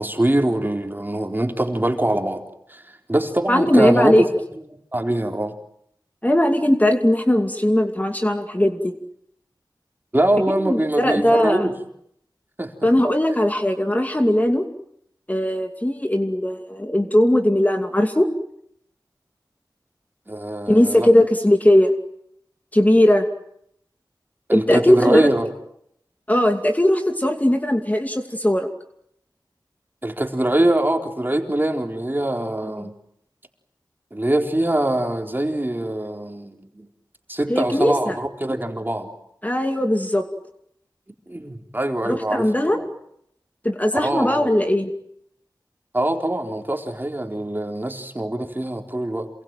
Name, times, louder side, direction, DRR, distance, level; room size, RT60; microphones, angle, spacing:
voice 1, 0.0-2.4 2.7-4.2 4.9-5.5 10.1-11.7 12.6-12.7 20.3-21.1 24.5-25.5 30.0-33.0 34.1-36.9 37.3-39.1 41.3-42.5 42.7-42.9 44.0-44.7 45.9-49.3, right 1 dB, 25° right, 4 dB, 4.1 m, -23 dB
voice 2, 3.5-4.3 6.2-8.9 10.6-11.7 12.8-14.7 15.3-18.3 20.7-21.9 22.7-23.2 24.5-25.3 26.3-28.7 32.8-32.9 37.5-38.1 39.4-40.2 42.0-42.8 43.6-44.9, left 1 dB, 20° left, 5 dB, 2.6 m, -19 dB
28.0 x 22.0 x 9.2 m, 0.74 s
wide cardioid pair, 45°, 8 cm